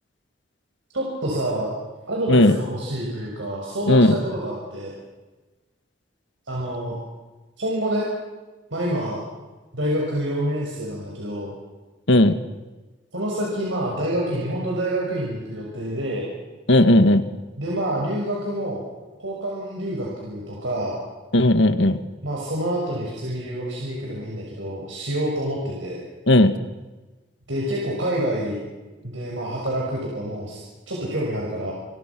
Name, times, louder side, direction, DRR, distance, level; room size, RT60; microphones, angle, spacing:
voice 1, 0.9-1.7 2.1-4.9 6.5-7.0 7.6-8.1 8.7-9.2 9.7-11.5 13.1-16.3 17.6-18.8 19.2-21.0 22.2-26.0 27.5-28.6 29.0-31.7, right 1 dB, 85° right, -3 dB, 6.4 m, -27 dB
voice 2, 16.7-17.2 21.3-22.0 26.3-26.5, left 1 dB, 70° left, 11 dB, 1.6 m, -15 dB
29.5 x 24.0 x 6.1 m, 1.2 s
head